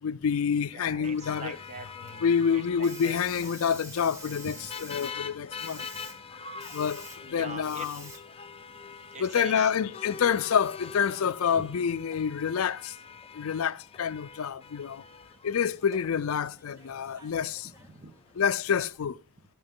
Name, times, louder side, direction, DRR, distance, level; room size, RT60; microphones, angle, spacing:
voice 1, 0.0-1.6 2.2-5.8 6.7-8.1 9.2-13.0 13.3-15.0 15.4-17.7 18.4-19.2, left 7 dB, 75° left, 0.4 m, -28 dB
Hiss, 0.6-19.0, right 1 dB, 15° right, 1.4 m, -52 dB
voice 2, 0.6-3.2 6.0-6.1 7.2-7.8 9.1-9.7 15.0-15.2 17.6-18.1, right 3 dB, 35° right, 1.2 m, -43 dB
sound 1, 1.0-18.9, left 5 dB, 25° left, 0.6 m, -45 dB
15.0 x 5.8 x 3.6 m
head